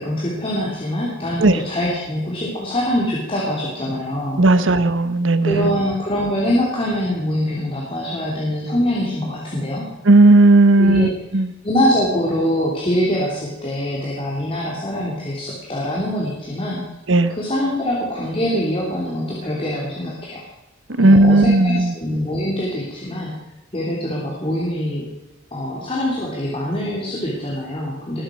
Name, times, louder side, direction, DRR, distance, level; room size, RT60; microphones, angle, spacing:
voice 1, 0.0-4.4 5.4-9.9 10.8-11.1 11.6-16.8 17.4-20.4 21.0-23.3 23.7-25.1 25.5-28.2, equal, 25° left, -4 dB, 3.2 m, -23 dB
voice 2, 4.4-5.8 10.0-11.1 11.3-11.5 17.1-17.3 21.0-21.9, right 2 dB, 70° right, 12 dB, 1.1 m, -14 dB
20.5 x 9.0 x 6.4 m, 0.99 s
head